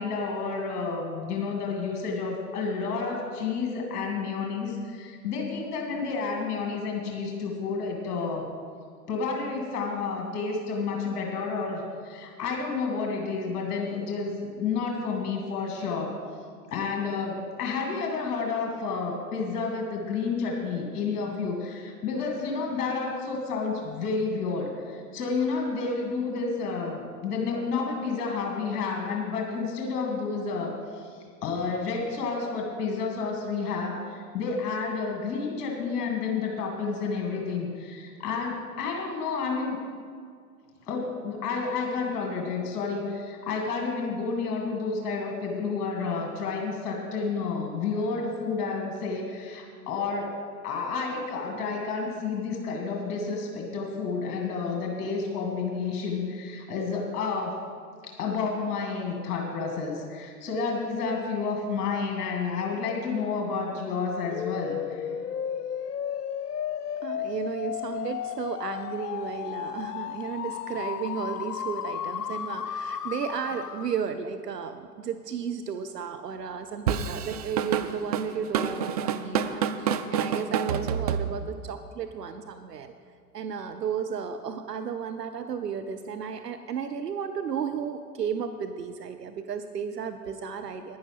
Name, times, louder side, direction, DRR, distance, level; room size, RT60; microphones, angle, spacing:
voice 1, 0.0-8.5 9.1-16.1 16.7-39.8 40.8-50.3 50.6-57.6 58.0-65.1, left 4 dB, 40° left, 1 dB, 2.1 m, -30 dB
sound 1, 64.3-74.1, left 9 dB, 75° left, 0.6 m, -34 dB
voice 2, 67.0-82.9 83.3-91.0, right 7 dB, 80° right, 8 dB, 0.7 m, -33 dB
Drum kit / Drum, 76.9-81.7, right 7 dB, 30° right, 0.3 m, -28 dB
10.5 x 10.0 x 5.9 m, 2.2 s
figure-of-eight pair, 95°, 48 cm